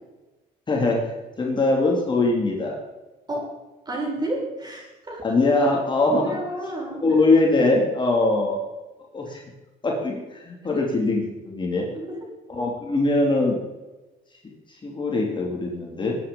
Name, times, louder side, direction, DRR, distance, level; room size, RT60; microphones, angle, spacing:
voice 1, 0.7-1.0 1.4-2.8 5.2-6.4 7.0-8.6 9.1-9.4 9.8-11.9 12.5-13.6 14.8-16.2, left 2 dB, 30° left, -1 dB, 3.3 m, -22 dB
voice 2, 3.9-5.2 6.1-7.0 10.7-10.8 11.9-12.3, right 1 dB, 25° right, -2 dB, 7.3 m, -31 dB
21.0 x 9.8 x 5.5 m, 1.1 s
cardioid pair, 110°, 17 cm